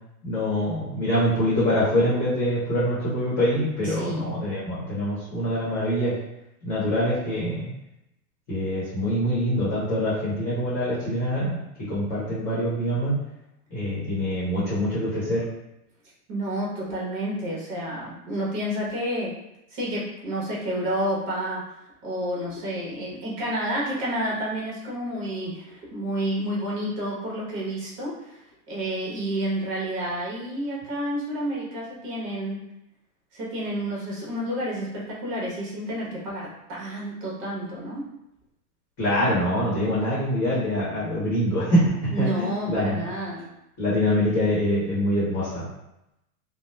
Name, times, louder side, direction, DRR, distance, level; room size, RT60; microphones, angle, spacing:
voice 1, 0.2-6.1 6.6-7.7 8.5-11.6 11.9-13.2 13.7-15.4 39.0-43.0 43.8-45.7, equal, 25° left, -10 dB, 1.0 m, -24 dB
voice 2, 3.8-4.3 16.3-19.3 19.7-21.6 22.0-28.4 28.7-32.7 33.3-38.1 42.1-43.5, right 1 dB, 35° right, -4 dB, 0.9 m, -30 dB
2.9 x 2.0 x 2.2 m, 0.86 s
hypercardioid pair, 145°, 46 cm